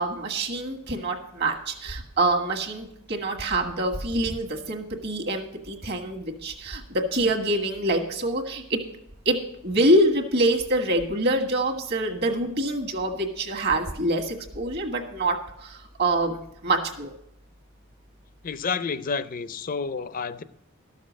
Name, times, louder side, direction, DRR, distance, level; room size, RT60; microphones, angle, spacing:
voice 1, 0.0-8.8 9.2-17.1, right 1 dB, 50° right, 4 dB, 1.5 m, -25 dB
voice 2, 18.4-20.4, left 5 dB, 40° left, 14 dB, 0.5 m, -30 dB
13.0 x 6.6 x 6.2 m, 0.77 s
head